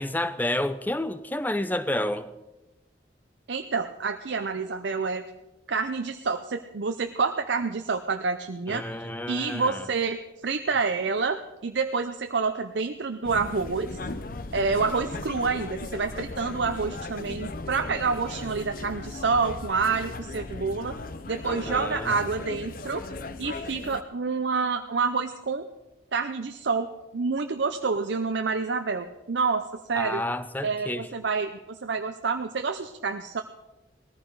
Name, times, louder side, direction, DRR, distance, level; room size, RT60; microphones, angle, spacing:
voice 1, 0.0-2.3 8.7-9.9 21.4-22.1 30.0-31.1, left 1 dB, 10° left, 0.6 m, -30 dB
voice 2, 3.5-5.2 5.7-13.9 14.5-21.0 21.3-23.0 23.4-25.7 26.1-30.2 30.6-33.4, right 4 dB, 70° right, 0.6 m, -28 dB
sound 1, 13.2-24.0, left 3 dB, 45° left, 0.7 m, -37 dB
19.0 x 14.5 x 4.7 m
head